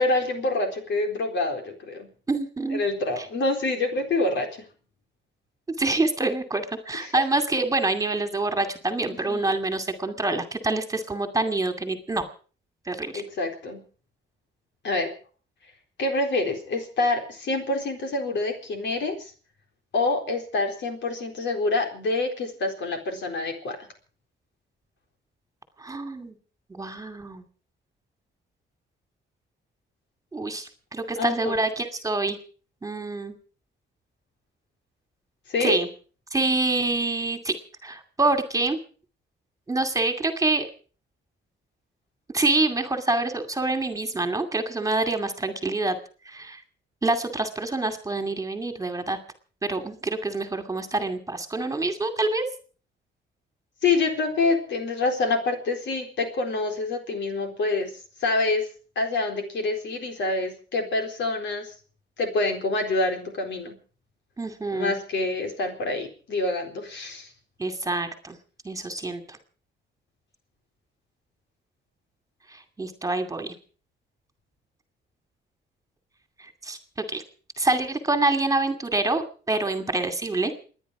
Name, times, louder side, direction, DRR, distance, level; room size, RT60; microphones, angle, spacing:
voice 1, 0.0-2.1 2.7-4.6 7.0-7.1 9.3-9.4 13.1-13.8 14.8-15.1 16.0-19.3 19.9-23.8 31.2-31.6 35.5-35.8 53.8-57.9 58.2-58.6 59.0-61.7 62.2-63.8 64.7-67.3, left 3 dB, 65° left, 4 dB, 4.1 m, -26 dB
voice 2, 2.3-2.8 3.2-3.3 5.8-12.2 12.9-13.2 25.8-26.3 26.7-27.4 30.3-32.4 32.8-33.3 35.6-35.9 36.3-37.6 37.8-38.8 39.7-40.7 42.3-45.9 46.3-46.6 47.0-49.2 49.6-52.4 64.4-64.9 67.6-68.4 68.6-69.4 72.5-73.5 76.4-76.8 77.1-77.2 77.6-80.5, right 2 dB, 15° right, 7 dB, 2.4 m, -26 dB
28.5 x 10.0 x 4.9 m, 0.41 s
cardioid pair, 90°, 20 cm